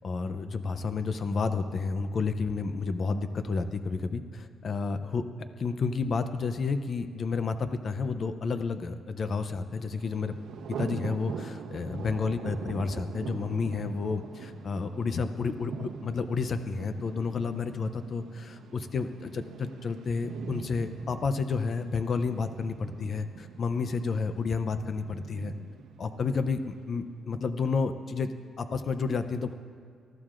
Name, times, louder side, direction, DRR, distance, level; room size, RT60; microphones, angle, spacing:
voice 1, 0.0-5.2 5.6-10.3 10.8-25.5 26.0-28.3 28.6-29.5, left 4 dB, 35° left, 9 dB, 0.5 m, -31 dB
Thunder, 9.8-26.8, right 6 dB, 85° right, 0.9 m, -43 dB
27.0 x 14.0 x 2.5 m, 2.3 s
cardioid pair, 180°, 0 cm